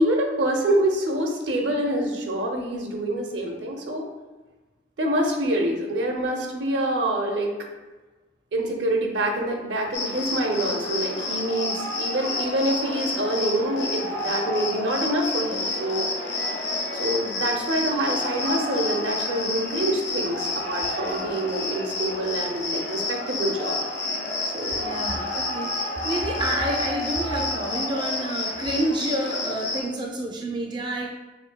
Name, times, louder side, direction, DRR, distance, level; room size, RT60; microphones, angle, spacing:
voice 1, 0.0-4.0 5.0-7.5 8.5-16.1 17.0-23.8 24.4-25.0, right 1 dB, 80° right, 2 dB, 0.7 m, -26 dB
Cricket, 9.9-29.8, left 2 dB, 75° left, 1.0 m, -29 dB
voice 2, 24.8-25.7 26.0-31.1, right 1 dB, 25° right, 1 dB, 0.3 m, -28 dB
5.2 x 2.6 x 2.2 m, 1.2 s
head